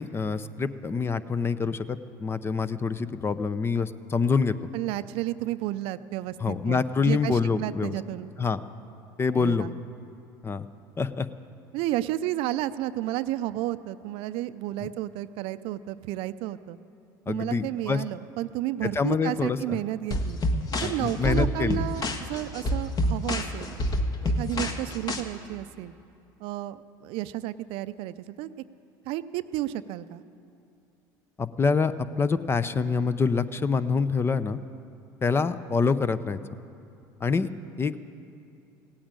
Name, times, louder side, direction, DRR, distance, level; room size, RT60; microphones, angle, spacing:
voice 1, 0.0-4.5 6.4-8.0 8.4-8.6 9.2-9.7 10.4-10.7 11.0-11.3 14.8-14.9 17.3-18.0 18.8-19.8 20.8-21.8 31.4-34.6 35.2-36.4 37.2-37.5 37.8-38.0, left 5 dB, 25° left, 14 dB, 0.6 m, -26 dB
voice 2, 4.7-8.3 9.3-9.7 11.7-16.8 17.3-20.4 20.8-23.8 24.2-25.9 26.4-28.5 29.1-30.2, right 14 dB, 65° right, 14 dB, 0.5 m, -32 dB
sound 1, 20.1-25.2, left 1 dB, 40° left, 1.4 m, -27 dB
16.5 x 8.7 x 8.9 m, 2.6 s
supercardioid pair, 90°, 10 cm